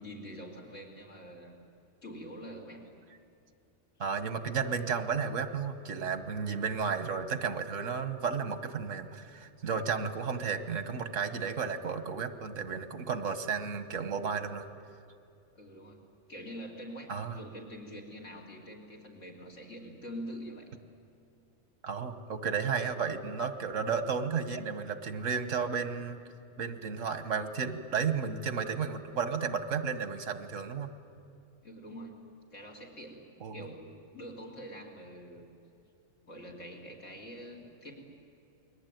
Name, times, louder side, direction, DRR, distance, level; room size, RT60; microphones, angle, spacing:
voice 1, 0.0-1.6 2.0-2.9 15.6-16.0 16.3-20.7 31.6-32.2 32.5-35.5 36.3-38.0, equal, 80° left, 2 dB, 3.9 m, -45 dB
voice 2, 4.0-14.7 17.1-17.4 21.8-26.2 26.6-30.9 33.4-33.7, right 6 dB, 90° right, 10 dB, 1.7 m, -33 dB
29.0 x 21.0 x 9.2 m, 2.6 s
omnidirectional pair, 1.3 m